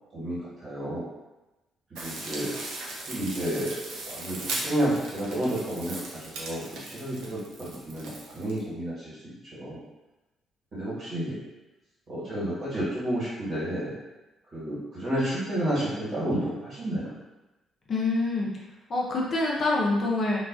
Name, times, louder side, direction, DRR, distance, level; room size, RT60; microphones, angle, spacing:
voice 1, 0.1-1.1 1.9-2.5 3.1-3.8 4.1-9.8 10.7-11.4 12.1-13.9 14.5-17.1, right 1 dB, 50° right, -9 dB, 1.3 m, -31 dB
sound 1, 2.0-8.6, right 2 dB, 70° right, 0.5 m, -38 dB
voice 2, 17.9-18.5 18.9-20.5, left 2 dB, 45° left, -4 dB, 0.6 m, -26 dB
2.3 x 2.2 x 2.4 m, 1.1 s
hypercardioid pair, 45°, 0 cm